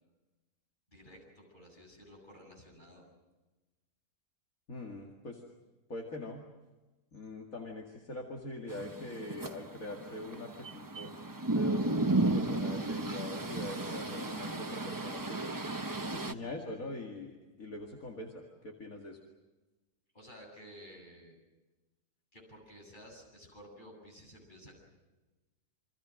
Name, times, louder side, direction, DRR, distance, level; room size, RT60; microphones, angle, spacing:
voice 1, 0.9-3.0 20.1-21.4 22.3-24.8, equal, 30° left, 1 dB, 8.2 m, -53 dB
voice 2, 4.7-5.4 5.9-6.4 7.1-11.1 11.5-15.5 16.1-19.2, left 2 dB, 60° left, 1 dB, 2.6 m, -43 dB
sound 1, 8.7-16.3, right 2 dB, 15° right, 0.8 m, -34 dB
28.5 x 25.5 x 6.5 m, 1.1 s
omnidirectional pair, 1.7 m